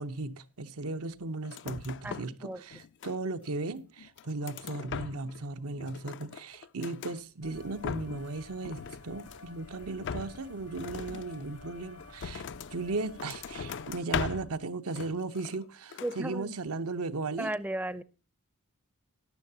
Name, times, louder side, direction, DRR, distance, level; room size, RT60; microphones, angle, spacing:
voice 1, 0.0-12.4 12.7-17.5, right 3 dB, 80° right, 0.9 m, -36 dB
sound 1, 1.5-2.4 2.7-3.5 4.0-5.4 5.7-7.2 7.6-8.3 8.6-9.6 10.0-12.8 13.2-14.6 14.9-15.7 15.9-16.2, left 6 dB, 55° left, 0.4 m, -40 dB
voice 2, 2.0-2.6 16.0-16.5 17.4-18.0, right 1 dB, 5° right, 0.5 m, -35 dB
sound 2, 7.4-14.0, left 3 dB, 85° left, 1.6 m, -50 dB
14.0 x 10.5 x 2.8 m
head